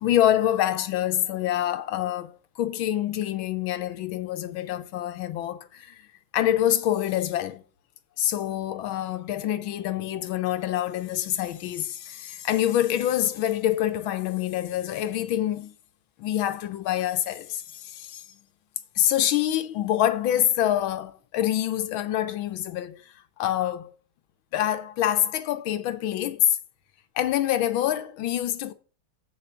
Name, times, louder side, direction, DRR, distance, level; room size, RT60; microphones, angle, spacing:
voice 1, 0.0-6.1 6.3-7.6 8.2-15.7 16.2-18.2 19.0-23.0 23.4-23.9 24.5-26.6 27.2-28.7, left 12 dB, 90° left, 1.7 m, -26 dB
7.6 x 7.1 x 6.9 m
omnidirectional pair, 2.1 m